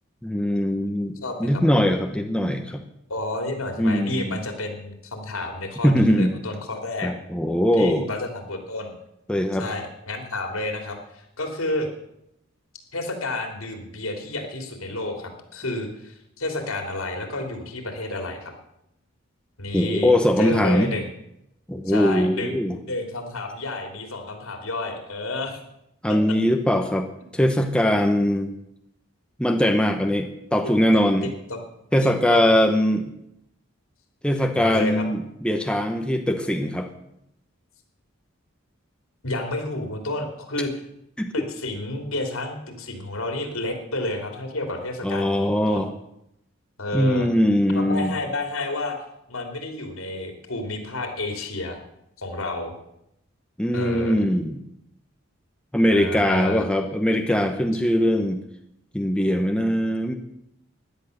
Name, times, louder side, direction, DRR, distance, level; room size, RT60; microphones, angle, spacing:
voice 1, 0.2-1.1 1.4-2.8 3.8-4.4 5.8-6.3 7.0-8.1 9.3-9.7 19.7-20.9 21.7-22.8 26.0-27.1 27.3-28.5 29.4-31.3 31.9-33.1 34.2-36.9 41.2-41.3 45.0-45.9 46.9-48.1 53.6-54.6 55.7-58.4 58.9-60.1, equal, 5° left, 5 dB, 0.9 m, -21 dB
voice 2, 1.2-1.6 3.1-7.1 7.8-8.9 9.6-11.9 12.9-18.5 19.6-21.1 21.8-22.5 22.9-25.6 26.1-26.2 30.9-31.6 32.0-32.4 34.6-35.1 39.2-40.7 41.3-45.8 46.8-47.3 47.7-49.0 49.3-51.8 52.2-52.7 53.7-54.2 55.9-56.6, left 2 dB, 80° left, 4 dB, 3.2 m, -30 dB
16.5 x 11.0 x 6.6 m, 0.80 s
head